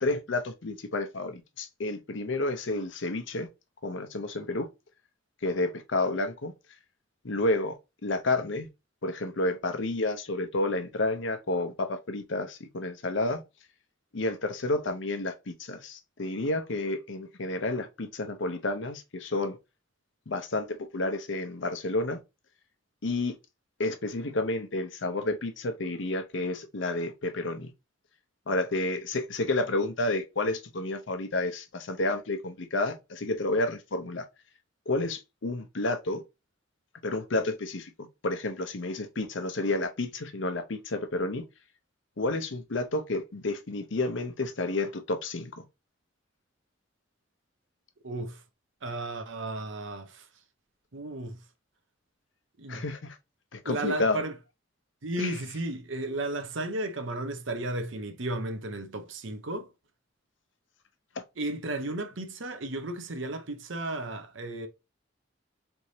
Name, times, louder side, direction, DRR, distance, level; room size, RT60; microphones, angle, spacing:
voice 1, 0.0-3.5 3.8-4.7 5.4-6.5 7.2-7.7 8.0-8.7 9.0-13.4 14.1-19.6 20.3-22.2 23.0-23.3 23.8-27.7 28.5-34.2 34.9-36.2 37.0-37.9 38.2-41.4 42.2-45.6 52.7-53.2 53.5-54.2 55.2-55.3, left 2 dB, 70° left, 0.7 m, -30 dB
voice 2, 48.0-48.4 48.8-50.3 50.9-51.4 52.6-52.9 53.6-54.3 55.0-59.7 61.4-64.7, right 1 dB, 75° right, 0.9 m, -34 dB
4.1 x 3.5 x 3.2 m
head